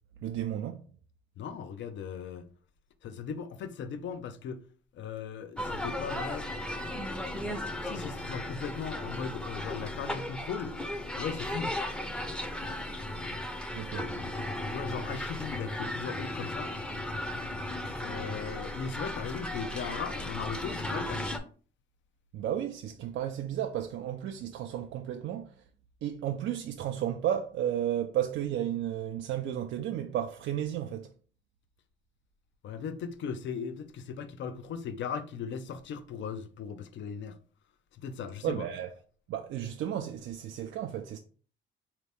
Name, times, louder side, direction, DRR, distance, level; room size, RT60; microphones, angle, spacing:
voice 1, 0.2-0.8 13.7-14.1 22.3-25.6 26.0-31.1 38.4-38.9 39.3-41.2, right 10 dB, 70° right, 0.4 m, -33 dB
voice 2, 1.4-2.5 3.0-4.6 4.9-6.5 7.4-10.7 11.2-11.7 14.7-16.7 18.0-21.2 32.6-37.4 37.9-38.7, left 6 dB, 70° left, 0.6 m, -38 dB
sound 1, 5.6-21.4, left 1 dB, 5° left, 0.6 m, -36 dB
4.0 x 2.8 x 3.4 m
cardioid pair, 90°, 20 cm